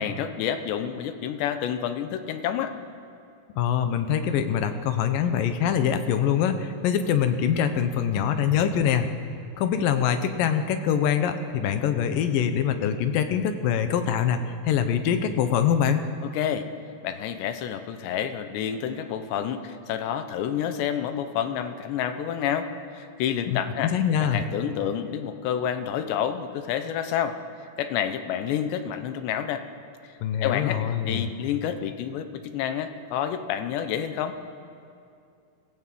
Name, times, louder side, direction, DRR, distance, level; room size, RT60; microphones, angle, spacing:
voice 1, 0.0-2.7 16.2-16.7 17.0-22.7 22.9-23.9 24.2-27.4 27.8-29.6 30.4-34.4, left 9 dB, 90° left, 9 dB, 3.3 m, -29 dB
voice 2, 3.6-9.1 9.6-16.0 23.5-24.4 30.2-31.3, left 8 dB, 70° left, 8 dB, 2.3 m, -24 dB
26.5 x 16.5 x 7.6 m, 2.5 s
omnidirectional pair, 4.9 m